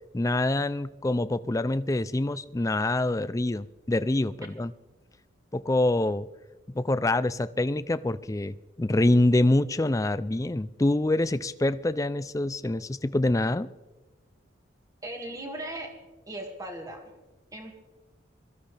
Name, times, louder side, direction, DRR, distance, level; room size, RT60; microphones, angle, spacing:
voice 1, 0.1-4.7 5.5-6.3 6.7-13.7, left 1 dB, 15° left, 15 dB, 0.4 m, -25 dB
voice 2, 15.0-15.9 16.3-17.1 17.5-17.8, right 1 dB, 15° right, 2 dB, 2.1 m, -38 dB
22.5 x 15.0 x 3.4 m, 1.2 s
head